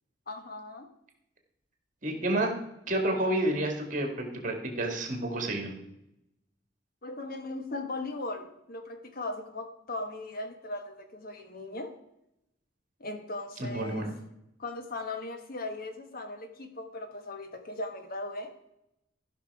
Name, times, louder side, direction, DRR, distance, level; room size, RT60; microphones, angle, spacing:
voice 1, 0.3-0.9 7.0-11.9 13.0-14.1 14.6-18.5, left 2 dB, 50° left, 6 dB, 1.2 m, -38 dB
voice 2, 2.0-2.5 2.9-4.1 4.3-5.7 13.6-14.1, right 1 dB, 45° right, 3 dB, 2.0 m, -29 dB
13.5 x 5.9 x 4.7 m, 0.83 s
head